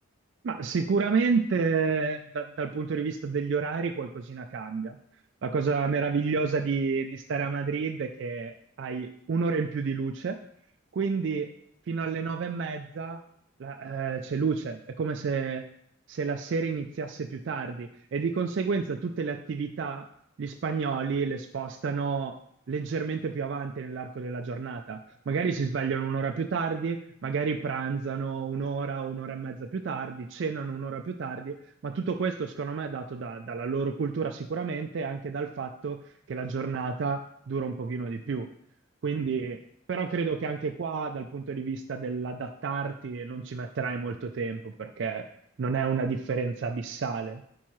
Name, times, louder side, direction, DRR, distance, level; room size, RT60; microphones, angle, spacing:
voice 1, 0.4-5.0 5.4-10.4 10.9-11.5 11.9-13.2 13.6-15.6 16.1-20.1 20.4-22.4 22.7-25.0 25.3-31.6 31.8-38.5 39.0-39.6 39.9-45.3 45.6-47.4, right 5 dB, 60° right, 5 dB, 0.3 m, -30 dB
8.6 x 4.7 x 3.1 m, 0.70 s
head